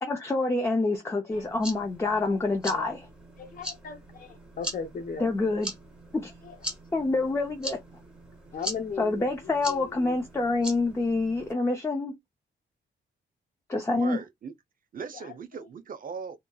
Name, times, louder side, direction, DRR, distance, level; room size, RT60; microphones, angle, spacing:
voice 1, 0.0-3.0 5.2-5.7 6.1-6.3 6.9-7.8 9.0-12.2 13.7-14.2, left 3 dB, 15° left, 0.4 m, -27 dB
sound 1, 1.3-11.5, equal, 5° right, 0.8 m, -41 dB
voice 2, 3.4-5.3 6.4-6.6 8.5-10.2 15.0-15.7, left 5 dB, 45° left, 0.7 m, -39 dB
voice 3, 13.9-14.5 14.9-16.4, right 6 dB, 45° right, 0.5 m, -39 dB
2.7 x 2.4 x 2.2 m
wide cardioid pair, 175°, 20 cm